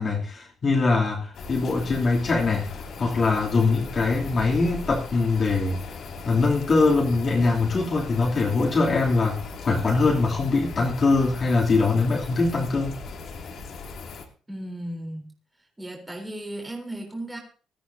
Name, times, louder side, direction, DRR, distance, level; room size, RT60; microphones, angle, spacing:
voice 1, 0.0-2.7 3.0-5.8 6.2-9.4 9.6-13.0, left 3 dB, 40° left, -2 dB, 3.1 m, -22 dB
sound 1, 1.3-14.3, left 4 dB, 60° left, 2.7 m, -38 dB
voice 2, 14.5-15.3 15.8-17.4, right 1 dB, 10° right, 1 dB, 3.9 m, -35 dB
20.0 x 14.0 x 2.8 m, 0.39 s
cardioid pair, 105°, 0 cm